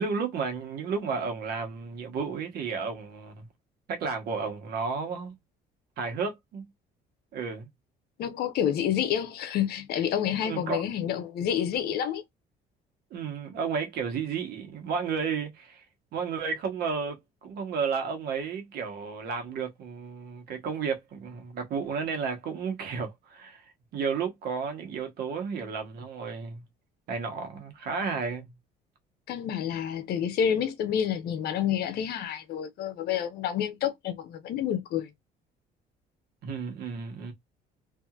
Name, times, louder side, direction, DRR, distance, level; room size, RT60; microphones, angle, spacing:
voice 1, 0.0-3.5 3.9-5.4 6.0-6.7 7.3-7.7 10.4-10.9 13.1-15.8 16.1-23.6 23.9-26.6 27.1-28.5 36.4-37.3, right 5 dB, 70° right, 1.1 m, -32 dB
voice 2, 8.2-12.2 29.3-35.1, left 9 dB, 70° left, 0.7 m, -29 dB
2.8 x 2.6 x 2.3 m
cardioid pair, 110°, 17 cm